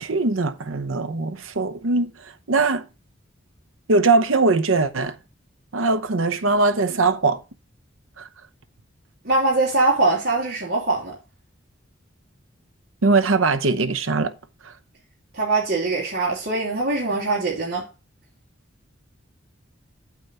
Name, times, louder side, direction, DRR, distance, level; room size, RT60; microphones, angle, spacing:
voice 1, 0.0-2.1 2.5-2.8 3.9-5.1 5.7-7.4 8.2-8.3 13.0-14.3, right 3 dB, 90° right, 0.9 m, -21 dB
voice 2, 9.2-11.1 15.3-17.9, right 2 dB, 60° right, 3.4 m, -22 dB
8.5 x 4.5 x 5.4 m
head